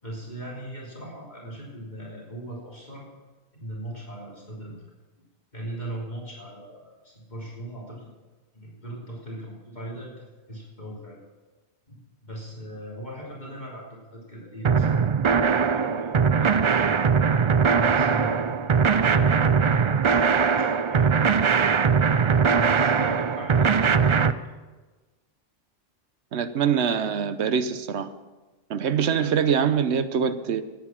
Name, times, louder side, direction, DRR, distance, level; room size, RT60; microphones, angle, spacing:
voice 1, 0.0-3.0 3.5-4.7 5.5-8.1 8.5-11.2 11.9-12.0 12.2-15.0 15.7-17.0 17.8-21.5 22.6-24.2, right 1 dB, 40° left, -5 dB, 3.3 m, -39 dB
sound 1, 14.6-24.3, right 6 dB, 50° right, 0.3 m, -21 dB
voice 2, 26.3-28.1 28.7-30.6, right 7 dB, 75° right, 11 dB, 1.1 m, -24 dB
14.5 x 9.7 x 7.3 m, 1.3 s
omnidirectional pair, 1.1 m